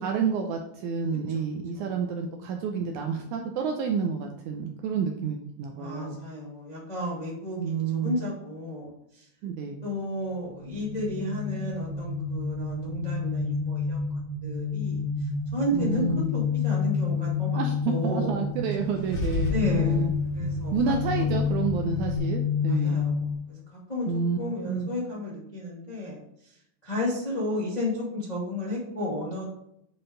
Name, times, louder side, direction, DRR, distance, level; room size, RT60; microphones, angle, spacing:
voice 1, 0.0-6.2 7.6-8.2 9.4-9.8 15.7-16.3 17.6-20.1 20.7-23.0 24.1-24.4 24.7-24.9, right 5 dB, 80° right, 3 dB, 1.8 m, -29 dB
voice 2, 5.7-9.2 9.8-16.1 16.3-18.4 19.5-20.1 20.3-21.3 22.7-23.2 23.5-23.6 23.9-24.1 24.4-26.2 26.8-29.4, left 1 dB, 15° left, -9 dB, 1.6 m, -33 dB
sound 1, 10.6-23.3, left 5 dB, 65° right, 2.2 m, -29 dB
Car / Engine starting / Idling, 18.7-22.2, left 1 dB, 80° left, 3.7 m, -34 dB
8.6 x 4.3 x 3.8 m, 0.76 s
omnidirectional pair, 4.0 m